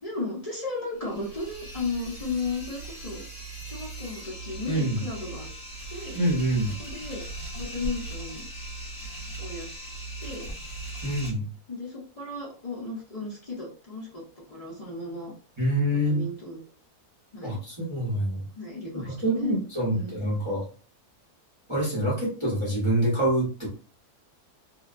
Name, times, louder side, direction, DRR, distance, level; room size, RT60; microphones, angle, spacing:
voice 1, 0.0-3.2 3.6-5.5 5.9-6.2 6.8-7.2 7.5-8.5 9.4-9.7 10.2-10.5 11.7-14.2 14.5-15.3 16.1-16.6 17.3-17.6 18.6-19.6 19.9-20.2, left 3 dB, 65° left, -5 dB, 0.3 m, -35 dB
sound 1, 0.9-11.3, right 2 dB, 40° left, 1.3 m, -39 dB
voice 2, 4.7-5.0 6.1-6.7 11.0-11.4 15.6-16.2 17.4-18.4 19.0-20.6 21.7-23.7, right 1 dB, 20° right, -7 dB, 0.9 m, -26 dB
2.7 x 2.2 x 2.5 m, 0.38 s
omnidirectional pair, 1.7 m